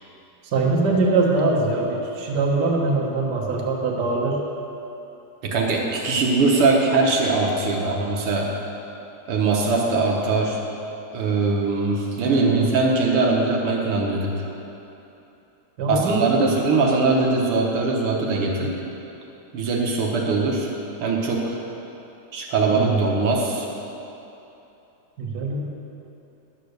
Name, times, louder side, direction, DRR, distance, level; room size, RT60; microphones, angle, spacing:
voice 1, 0.5-4.4 12.2-12.7 15.8-16.5 22.7-23.0 25.2-25.7, right 3 dB, 80° right, -1 dB, 0.9 m, -22 dB
voice 2, 5.4-8.5 9.3-10.6 11.1-14.3 15.9-18.7 19.5-20.7 21.0-21.6 22.3-23.7, right 3 dB, 60° right, -1 dB, 1.5 m, -21 dB
11.0 x 6.7 x 6.6 m, 2.9 s
omnidirectional pair, 3.6 m